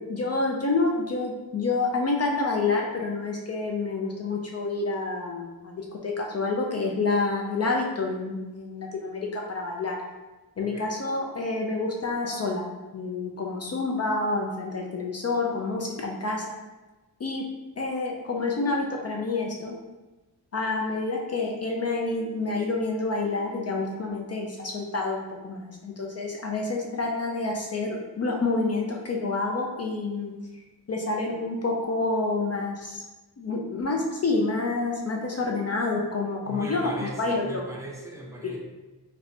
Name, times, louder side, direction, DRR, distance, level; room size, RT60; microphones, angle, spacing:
voice 1, 0.0-10.0 10.6-12.7 12.9-16.6 17.2-17.5 17.8-19.7 20.5-30.3 30.9-33.0 33.4-37.6 38.4-38.6, left 3 dB, 40° left, 0 dB, 0.4 m, -28 dB
voice 2, 10.6-10.9 36.4-38.6, right 1 dB, 10° right, -2 dB, 0.6 m, -38 dB
4.2 x 2.1 x 2.7 m, 1.1 s
wide cardioid pair, 115°, 40 cm